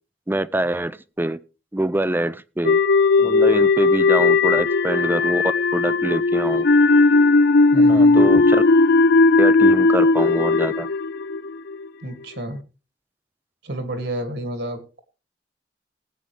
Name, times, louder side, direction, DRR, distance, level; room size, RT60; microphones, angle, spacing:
voice 1, 0.3-1.4 1.7-2.8 3.2-5.4 5.7-6.7 7.8-8.6 9.4-10.9, right 1 dB, 10° right, 17 dB, 0.5 m, -25 dB
sound 1, 2.6-11.9, left 3 dB, 60° left, 0.6 m, -16 dB
voice 2, 7.7-8.3 12.0-12.6 13.6-15.0, right 1 dB, 70° right, 7 dB, 2.5 m, -30 dB
19.5 x 8.9 x 3.4 m, 0.33 s
head